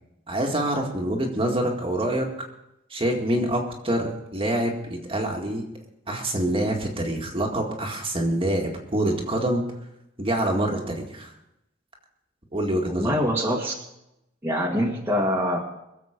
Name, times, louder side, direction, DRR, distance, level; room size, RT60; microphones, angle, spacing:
voice 1, 0.3-2.3 2.9-5.6 6.1-9.6 10.2-11.3 12.5-13.1, right 1 dB, 30° right, 1 dB, 2.0 m, -26 dB
voice 2, 12.9-13.7 14.4-15.6, equal, 10° right, -3 dB, 1.9 m, -24 dB
23.0 x 7.7 x 5.2 m, 0.86 s
head